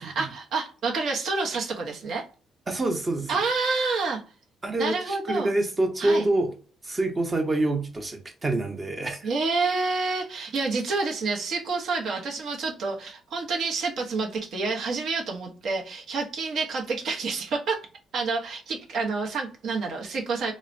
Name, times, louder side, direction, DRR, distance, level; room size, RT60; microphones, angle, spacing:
voice 1, 0.0-2.3 3.3-4.2 4.8-5.5 6.0-6.3 9.2-17.8 18.1-20.5, right 4 dB, 70° right, 0.7 m, -28 dB
voice 2, 2.7-3.4 4.6-6.5 6.8-9.3, right 2 dB, 30° right, 0.7 m, -26 dB
3.1 x 2.0 x 2.5 m
cardioid pair, 90°, 0 cm